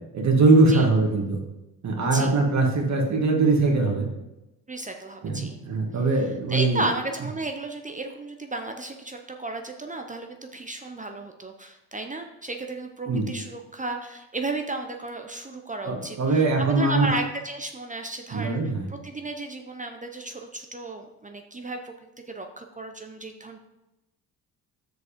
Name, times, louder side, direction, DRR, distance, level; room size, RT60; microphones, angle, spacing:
voice 1, 0.1-1.4 1.8-4.1 5.2-6.8 13.1-13.3 15.8-17.1 18.3-18.8, right 3 dB, 50° right, 0 dB, 1.9 m, -21 dB
voice 2, 2.0-2.4 4.7-5.6 6.5-18.6 18.9-21.9 22.3-23.6, right 2 dB, 20° right, 4 dB, 0.7 m, -33 dB
6.4 x 5.2 x 5.1 m, 0.97 s
cardioid pair, 75°, 37 cm